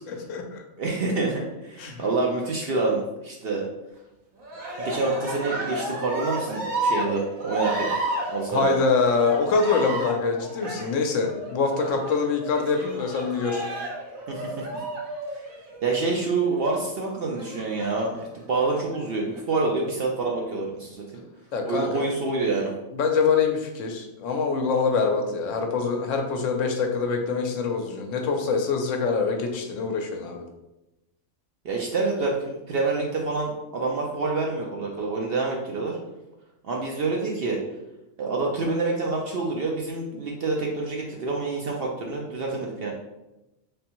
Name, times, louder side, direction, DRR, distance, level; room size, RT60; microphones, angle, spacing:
voice 1, 0.1-0.6 1.8-2.0 8.5-13.7 21.5-22.0 22.9-30.4, left 4 dB, 75° left, 3 dB, 0.9 m, -25 dB
voice 2, 0.8-3.7 4.8-7.9 8.3-8.7 14.3-14.5 15.3-15.4 15.8-21.2 21.6-22.7 31.6-36.0 36.6-37.6 38.2-42.9, right 3 dB, 60° right, -1 dB, 0.6 m, -27 dB
Cheering, 4.4-16.1 17.3-18.2 18.9-19.6, right 1 dB, 85° right, 1.3 m, -32 dB
3.4 x 3.4 x 2.9 m, 0.96 s
omnidirectional pair, 1.4 m